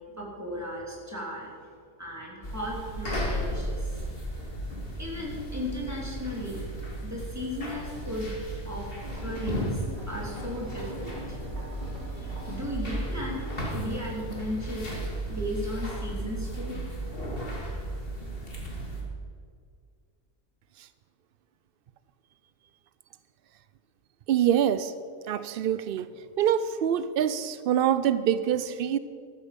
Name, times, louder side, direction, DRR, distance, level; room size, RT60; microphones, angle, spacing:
voice 1, 0.1-1.5 2.0-4.0 5.0-6.6 7.0-8.3 8.6-11.4 12.1-15.0 15.3-16.8, equal, 10° right, -4 dB, 3.3 m, -36 dB
sound 1, 2.4-19.0, right 1 dB, 40° left, 2.6 m, -35 dB
sound 2, 9.0-12.7, equal, 30° right, 2.9 m, -43 dB
voice 2, 24.3-24.9 25.3-26.1 26.4-29.0, right 9 dB, 90° right, 14 dB, 0.5 m, -25 dB
14.0 x 12.0 x 5.3 m, 2.3 s
omnidirectional pair, 1.5 m